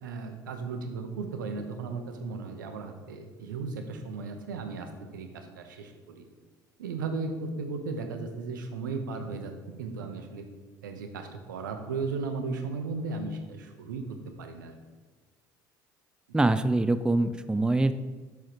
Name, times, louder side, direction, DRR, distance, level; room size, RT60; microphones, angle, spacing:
voice 1, 0.0-6.2 6.8-9.5 9.8-10.4 10.8-14.7, right 4 dB, 85° right, 6 dB, 0.8 m, -36 dB
voice 2, 16.3-17.9, right 2 dB, 10° right, 11 dB, 0.4 m, -24 dB
7.1 x 4.6 x 4.6 m, 1.3 s
hypercardioid pair, 60°, 10 cm